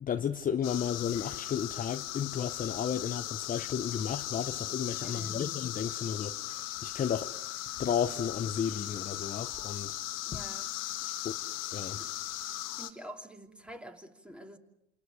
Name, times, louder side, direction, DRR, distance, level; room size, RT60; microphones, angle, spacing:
voice 1, 0.0-7.3 7.8-10.0 10.3-10.4 11.2-11.4 11.7-12.0, left 8 dB, 25° left, 1.0 m, -33 dB
sound 1, 0.6-12.9, left 15 dB, 50° left, 1.9 m, -38 dB
voice 2, 5.0-5.5 10.3-11.2 12.0-12.2 12.8-14.6, right 1 dB, 5° right, 2.8 m, -48 dB
29.0 x 28.0 x 6.5 m
hypercardioid pair, 100°, 33 cm